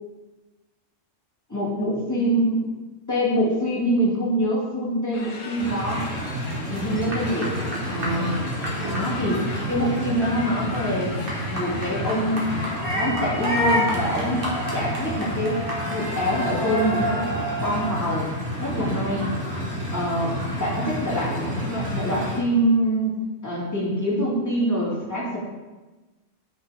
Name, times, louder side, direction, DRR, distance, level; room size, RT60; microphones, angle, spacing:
voice 1, 1.5-2.6 3.1-6.0 6.7-8.4 8.8-11.2 11.5-12.5 12.9-14.5 14.7-18.3 18.6-19.3 19.9-23.2 23.4-25.4, equal, 15° left, -8 dB, 2.7 m, -25 dB
sound 1, 5.1-12.7, left 3 dB, 90° left, 1.4 m, -39 dB
sound 2, 5.6-22.4, equal, 45° right, 1.9 m, -28 dB
9.4 x 5.9 x 4.0 m, 1.2 s
omnidirectional pair, 1.3 m